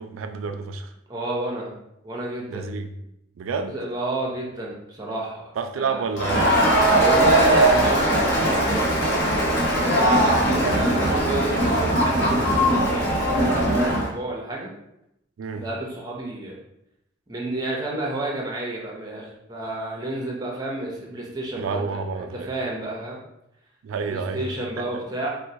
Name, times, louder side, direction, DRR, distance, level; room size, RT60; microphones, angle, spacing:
voice 1, 0.0-0.9 2.5-2.9 3.4-3.8 5.6-6.6 15.4-15.7 21.6-22.5 23.8-24.5 24.8-24.9, right 5 dB, 80° right, 8 dB, 0.3 m, -29 dB
voice 2, 1.1-1.7 2.0-2.7 3.7-6.0 6.9-14.7 15.6-16.6 17.3-21.8 22.2-23.2 24.1-25.3, right 1 dB, 20° right, -2 dB, 0.6 m, -30 dB
Crowd, 6.2-14.1, right 1 dB, 55° left, 1.0 m, -20 dB
4.3 x 2.1 x 2.7 m, 0.83 s
head